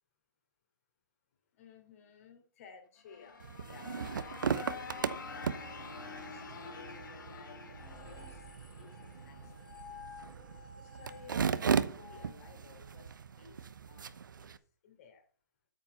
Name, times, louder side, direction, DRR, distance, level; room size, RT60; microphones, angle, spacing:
voice 1, 1.6-5.9 6.3-8.4 8.8-10.0 10.8-14.5 14.8-15.2, left 6 dB, 45° left, 5 dB, 3.6 m, -57 dB
sound 1, 3.0-9.8, left 5 dB, 75° left, 3.1 m, -47 dB
sound 2, 3.4-14.6, right 6 dB, 75° right, 0.9 m, -37 dB
sound 3, 7.7-13.2, left 4 dB, ahead, 3.1 m, -53 dB
8.9 x 8.0 x 5.5 m, 0.43 s
hypercardioid pair, 135°, 11 cm